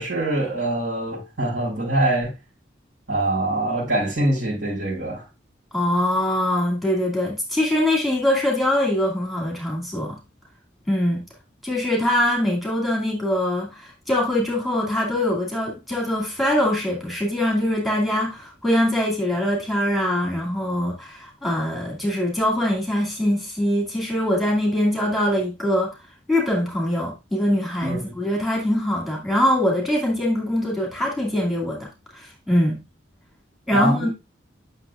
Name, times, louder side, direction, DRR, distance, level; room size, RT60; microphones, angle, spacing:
voice 1, 0.0-2.3 3.1-5.2 27.8-28.1 33.7-34.1, right 1 dB, 85° right, 4.9 m, -24 dB
voice 2, 5.7-10.2 10.9-11.2 11.6-25.9 26.3-31.9 32.1-32.8 33.7-34.1, left 1 dB, ahead, 2.3 m, -23 dB
9.7 x 6.4 x 2.4 m
head